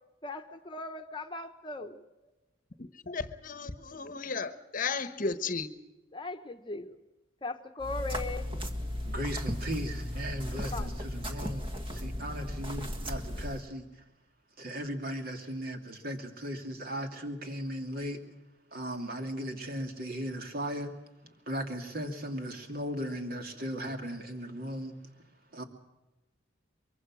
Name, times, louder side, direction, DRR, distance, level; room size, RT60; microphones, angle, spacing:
voice 1, 0.2-2.0 6.1-7.0 7.4-8.5 10.6-10.9, left 3 dB, 25° left, 6 dB, 1.1 m, -38 dB
voice 2, 2.8-5.7, left 4 dB, 45° left, 12 dB, 1.1 m, -34 dB
sound 1, 7.8-13.6, equal, 30° right, 1.7 m, -36 dB
voice 3, 9.0-13.9 14.6-18.2 18.7-20.9 21.5-24.9 25.5-25.6, equal, 50° right, 4 dB, 2.8 m, -37 dB
23.5 x 23.5 x 6.3 m, 1.0 s
head